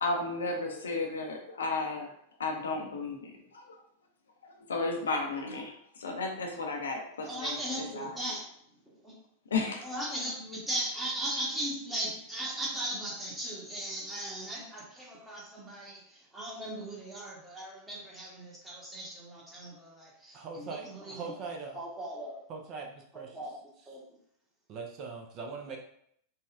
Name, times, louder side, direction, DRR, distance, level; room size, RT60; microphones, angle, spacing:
voice 1, 0.0-2.1 2.4-3.8 4.4-5.7 6.0-7.5 7.9-8.1 9.5-9.8, left 3 dB, 70° left, 2 dB, 0.5 m, -33 dB
voice 2, 7.2-8.5 8.9-9.2 9.8-21.4 21.7-22.4 23.1-23.6 23.9-24.0, right 1 dB, 10° right, -4 dB, 1.1 m, -38 dB
voice 3, 20.3-21.8 22.5-23.3 24.7-25.8, right 4 dB, 35° right, 2 dB, 0.5 m, -41 dB
4.0 x 2.2 x 2.3 m, 0.68 s
figure-of-eight pair, 90°, 0 cm